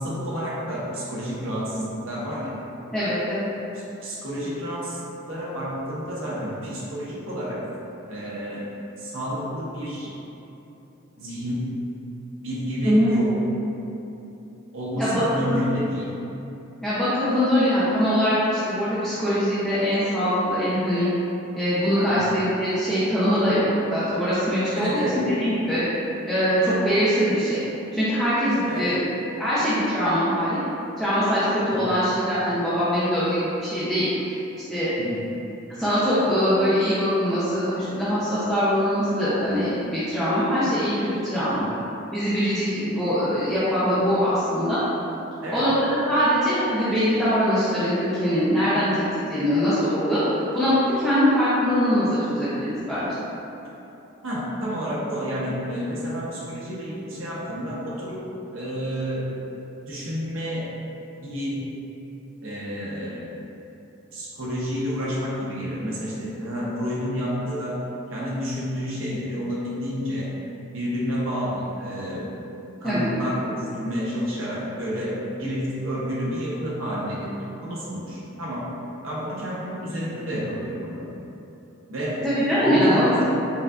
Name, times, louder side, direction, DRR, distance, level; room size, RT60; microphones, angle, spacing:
voice 1, 0.0-2.5 4.0-5.0 5.3-7.6 8.1-8.7 9.0-10.1 11.2-11.7 12.4-13.3 14.7-16.1 22.1-22.3 24.8-25.2 28.7-28.9 31.7-32.0 35.0-35.3 41.6-41.7 45.4-45.7 54.2-58.2 58.5-59.3 59.8-60.6 61.2-61.6 62.4-63.3 64.1-67.8 68.1-70.3 70.7-72.3 72.8-77.3 77.6-78.7 79.0-81.0 81.9-82.2 82.6-83.2, equal, 90° right, -7 dB, 0.9 m, -30 dB
voice 2, 2.9-3.5 12.8-13.1 15.0-15.7 16.8-21.1 21.5-25.0 25.4-25.8 26.3-27.6 27.9-29.0 29.4-30.6 31.0-34.4 34.7-34.9 35.7-41.7 42.1-44.8 45.5-50.2 50.5-53.1 72.8-73.1 82.3-83.2, equal, ahead, -14 dB, 0.5 m, -22 dB
5.3 x 2.4 x 2.3 m, 3.0 s
head